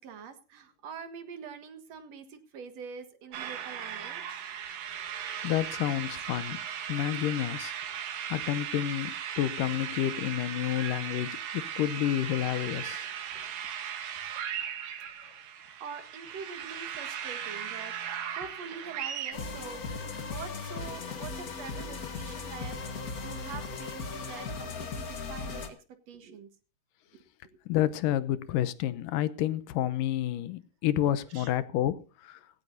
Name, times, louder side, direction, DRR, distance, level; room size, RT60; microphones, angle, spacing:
voice 1, 0.0-4.6 15.3-25.8 26.1-26.5 27.1-27.2 28.3-28.4 31.3-31.5, right 6 dB, 55° right, 2.7 m, -45 dB
sound 1, 3.3-19.3, right 9 dB, 85° right, 3.3 m, -37 dB
voice 2, 5.4-6.6 6.9-13.1 27.7-32.4, left 12 dB, 85° left, 2.5 m, -30 dB
sound 2, 19.3-25.7, left 4 dB, 40° left, 1.3 m, -37 dB
17.5 x 16.5 x 2.7 m
omnidirectional pair, 3.8 m